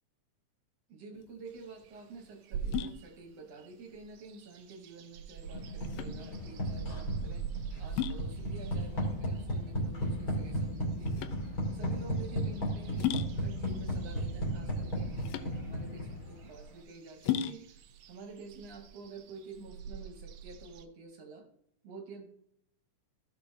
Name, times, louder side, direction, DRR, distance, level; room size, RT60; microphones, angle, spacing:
voice 1, 0.9-7.5 7.8-11.3 11.7-17.8 18.1-21.5 21.8-22.3, right 4 dB, 65° right, 3 dB, 1.8 m, -49 dB
sound 1, 1.1-19.7, left 10 dB, 90° left, 2.3 m, -40 dB
sound 2, 1.5-3.2 3.6-20.8, right 7 dB, 85° right, 1.5 m, -45 dB
sound 3, 5.5-16.4, equal, 35° left, 1.8 m, -35 dB
14.0 x 6.8 x 2.7 m, 0.73 s
omnidirectional pair, 3.8 m